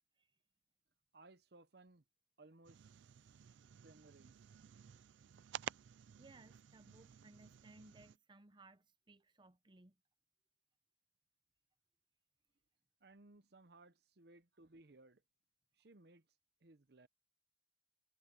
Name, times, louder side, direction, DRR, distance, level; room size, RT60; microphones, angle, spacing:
voice 1, 1.1-2.0 2.4-4.5 13.0-15.2 15.8-16.3 16.6-17.1, right 2 dB, 60° right, 0.9 m, -63 dB
sound 1, 2.6-8.2, right 9 dB, 85° right, 0.4 m, -52 dB
voice 2, 6.2-10.0, right 2 dB, 25° right, 0.7 m, -62 dB
head